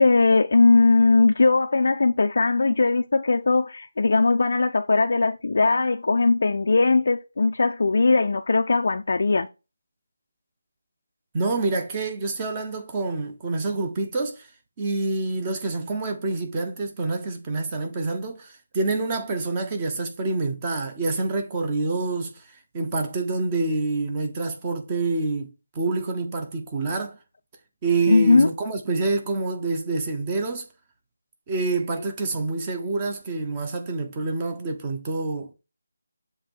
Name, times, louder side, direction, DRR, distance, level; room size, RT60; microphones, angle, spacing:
voice 1, 0.0-9.5 28.1-28.5, left 3 dB, 60° left, 0.5 m, -19 dB
voice 2, 11.3-14.5 14.8-25.5 25.7-27.2 27.8-30.7 31.5-35.5, right 3 dB, 20° right, 1.0 m, -27 dB
7.4 x 3.1 x 4.5 m
figure-of-eight pair, 165°, 0 cm